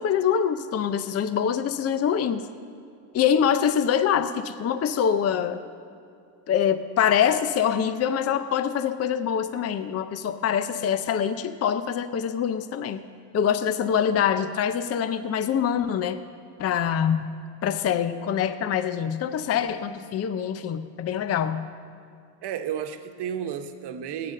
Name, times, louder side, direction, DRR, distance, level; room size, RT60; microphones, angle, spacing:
voice 1, 0.0-2.5 3.1-5.6 6.5-13.0 13.3-16.2 16.6-21.7, left 8 dB, 35° left, 11 dB, 0.6 m, -25 dB
voice 2, 22.4-24.3, right 8 dB, 60° right, 8 dB, 1.1 m, -32 dB
14.5 x 9.3 x 6.5 m, 2.4 s
cardioid pair, 105°, 46 cm